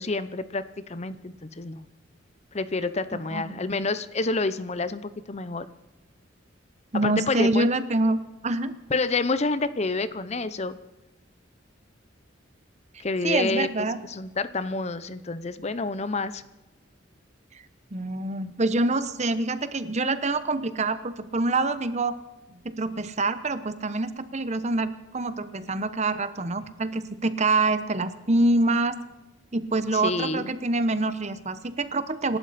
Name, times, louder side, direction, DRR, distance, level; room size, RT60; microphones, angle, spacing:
voice 1, 0.0-1.8 2.5-5.0 5.3-5.7 7.0-7.7 8.9-10.7 13.0-13.7 14.1-16.4 29.9-30.5, left 3 dB, 35° left, 14 dB, 0.7 m, -28 dB
voice 2, 6.9-8.7 13.2-14.0 17.9-22.1 22.6-29.0 29.5-32.4, right 2 dB, 35° right, 12 dB, 1.0 m, -26 dB
26.5 x 12.5 x 4.2 m, 1.0 s
head